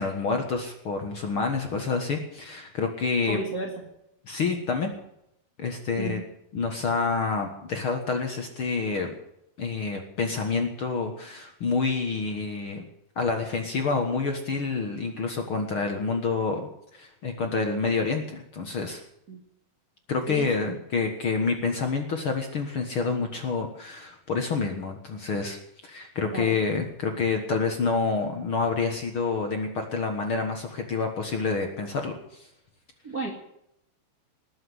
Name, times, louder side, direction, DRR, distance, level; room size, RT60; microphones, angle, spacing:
voice 1, 0.0-3.4 4.3-4.9 5.6-6.2 6.5-9.1 9.6-12.8 13.1-19.0 20.1-32.5, left 4 dB, 55° left, 4 dB, 1.6 m, -28 dB
voice 2, 3.3-3.7 6.0-6.2 19.3-19.4 20.3-20.8 26.3-26.6 33.0-33.3, right 3 dB, 30° right, 0 dB, 1.9 m, -33 dB
19.5 x 7.7 x 9.4 m, 0.79 s
omnidirectional pair, 4.4 m